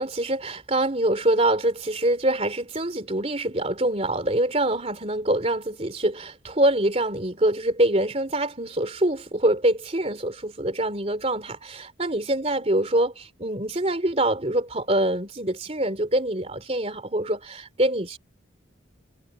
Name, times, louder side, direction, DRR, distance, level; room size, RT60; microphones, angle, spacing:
voice 1, 0.0-18.2, right 1 dB, 30° right, 3.3 m, -25 dB
head